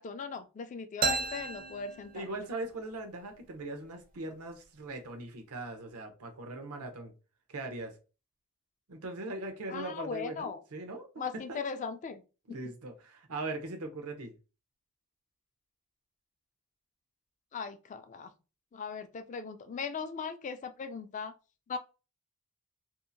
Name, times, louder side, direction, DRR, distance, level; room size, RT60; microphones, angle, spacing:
voice 1, 0.0-2.3 9.7-10.6 11.2-12.2 17.5-18.3 18.7-21.3 21.7-21.8, left 5 dB, 35° left, 0.3 m, -39 dB
sound 1, 1.0-2.7, right 4 dB, 40° right, 0.4 m, -33 dB
voice 2, 2.1-7.1 7.5-8.0 8.9-11.6 12.5-14.3, right 2 dB, 90° right, 0.7 m, -40 dB
2.7 x 2.4 x 2.5 m
head